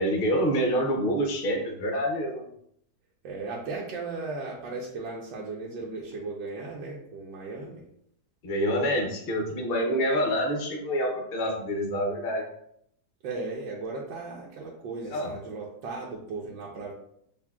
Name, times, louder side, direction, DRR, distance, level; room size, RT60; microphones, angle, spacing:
voice 1, 0.0-2.4 8.4-12.4 15.1-15.3, equal, 50° left, 1 dB, 0.7 m, -27 dB
voice 2, 3.2-7.8 13.2-16.9, right 3 dB, 85° right, -3 dB, 1.4 m, -36 dB
6.5 x 2.9 x 2.3 m, 0.72 s
omnidirectional pair, 1.9 m